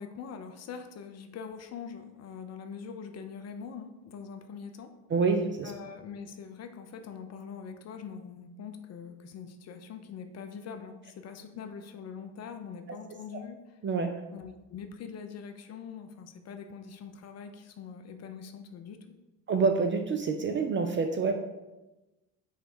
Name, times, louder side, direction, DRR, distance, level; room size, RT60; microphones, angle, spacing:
voice 1, 0.0-4.9 5.6-13.8 14.3-19.1, left 6 dB, 35° left, 7 dB, 0.5 m, -43 dB
voice 2, 5.1-5.7 12.9-13.0 13.8-14.1 19.5-21.3, right 4 dB, 30° right, 5 dB, 0.4 m, -27 dB
5.8 x 2.2 x 4.2 m, 1.0 s
hypercardioid pair, 60°, 46 cm